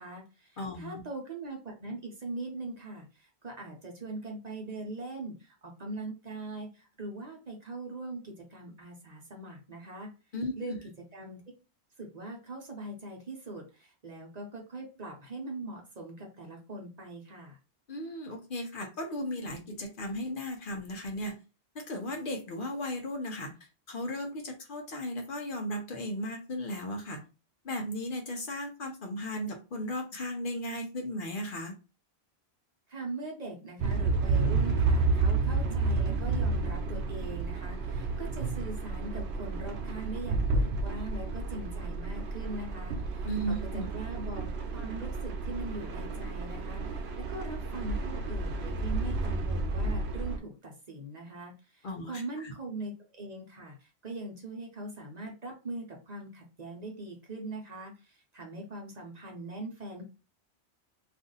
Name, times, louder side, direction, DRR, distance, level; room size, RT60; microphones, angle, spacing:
voice 1, 0.0-10.1 10.6-10.7 11.1-11.4 12.0-17.6 32.9-60.1, right 2 dB, 45° right, 0 dB, 0.8 m, -41 dB
voice 2, 0.6-1.0 10.3-10.8 17.9-21.4 21.7-23.5 23.9-27.2 27.6-31.7 43.2-43.9 51.8-52.5, equal, 55° left, 2 dB, 0.8 m, -36 dB
sound 1, 33.8-50.4, right 3 dB, 80° right, 0.8 m, -31 dB
2.5 x 2.5 x 3.9 m, 0.31 s
omnidirectional pair, 1.1 m